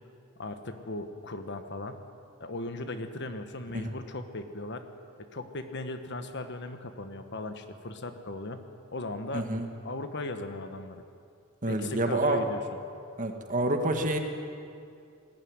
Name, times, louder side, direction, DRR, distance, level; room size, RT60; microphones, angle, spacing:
voice 1, 0.4-2.0 2.4-4.8 5.2-8.7 8.9-9.5 9.8-11.0 11.6-12.6, left 2 dB, 55° left, 8 dB, 1.4 m, -37 dB
voice 2, 9.3-9.7 11.6-12.4 13.2-14.2, right 2 dB, 40° right, 4 dB, 1.9 m, -28 dB
20.0 x 15.5 x 9.7 m, 2.4 s
head